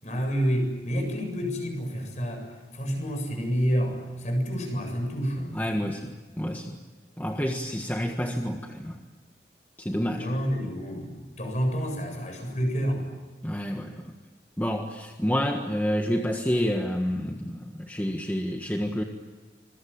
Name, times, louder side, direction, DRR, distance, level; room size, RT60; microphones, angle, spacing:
voice 1, 0.0-2.5 2.7-5.6 10.1-13.1, equal, 40° left, 4 dB, 7.7 m, -28 dB
voice 2, 5.5-6.8 7.2-9.0 9.8-10.3 13.4-14.1 14.6-19.0, equal, 10° left, 2 dB, 1.5 m, -29 dB
27.0 x 22.5 x 8.8 m, 1.4 s
head